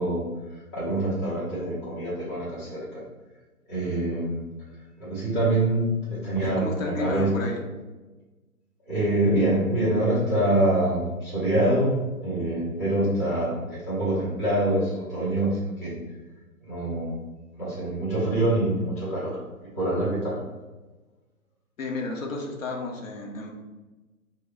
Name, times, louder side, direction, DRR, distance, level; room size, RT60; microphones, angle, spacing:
voice 1, 0.0-3.0 3.7-4.4 5.0-5.8 6.1-7.3 8.9-16.0 16.6-17.2 17.6-19.4 19.7-20.4, right 1 dB, 10° left, -11 dB, 0.6 m, -25 dB
voice 2, 6.4-7.6 21.8-23.5, left 3 dB, 60° left, 0 dB, 0.9 m, -32 dB
3.0 x 2.2 x 3.7 m, 1.2 s
figure-of-eight pair, 140°, 45 cm